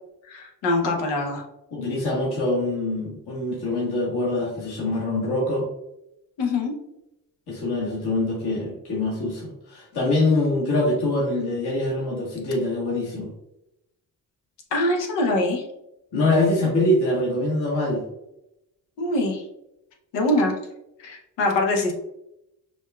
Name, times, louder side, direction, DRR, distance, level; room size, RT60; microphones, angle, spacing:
voice 1, 0.3-1.4 6.4-6.7 14.7-15.6 19.0-19.4 20.1-20.5 21.0-21.9, left 2 dB, 85° left, 1 dB, 0.9 m, -23 dB
voice 2, 1.7-5.7 7.5-13.3 16.1-18.0, left 2 dB, 65° left, -5 dB, 1.5 m, -24 dB
5.0 x 2.4 x 2.2 m, 0.86 s
supercardioid pair, 55°, 43 cm